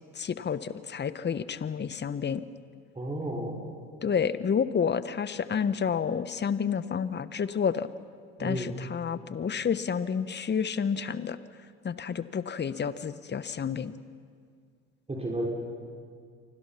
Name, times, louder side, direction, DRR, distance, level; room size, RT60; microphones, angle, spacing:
voice 1, 0.1-2.4 4.0-7.9 8.4-11.4 11.8-13.9, left 7 dB, 30° left, 14 dB, 1.2 m, -30 dB
voice 2, 3.0-3.5 8.4-8.7 15.1-15.5, right 1 dB, 15° right, -2 dB, 5.5 m, -32 dB
30.0 x 25.0 x 5.9 m, 2.1 s
hypercardioid pair, 60°, 34 cm